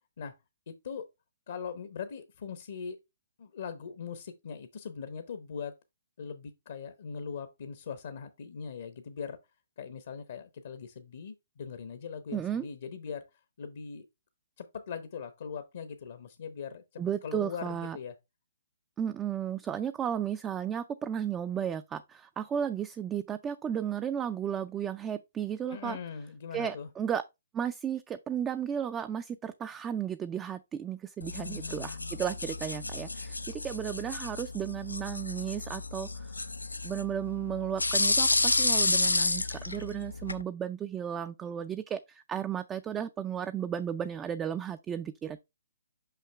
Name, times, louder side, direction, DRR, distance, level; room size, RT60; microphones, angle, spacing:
voice 1, 0.7-1.0 1.5-3.0 3.4-5.8 6.2-9.4 9.8-13.3 13.6-14.1 14.6-18.1 25.7-26.9 31.4-32.2, left 6 dB, 55° left, 0.8 m, -41 dB
voice 2, 12.3-12.7 17.0-18.0 19.0-26.0 26.5-27.2 27.5-36.3 36.8-45.4, right 9 dB, 15° right, 0.3 m, -34 dB
sound 1, 31.2-40.4, left 2 dB, 85° left, 0.5 m, -31 dB
5.8 x 5.8 x 3.2 m
figure-of-eight pair, 130°, 0 cm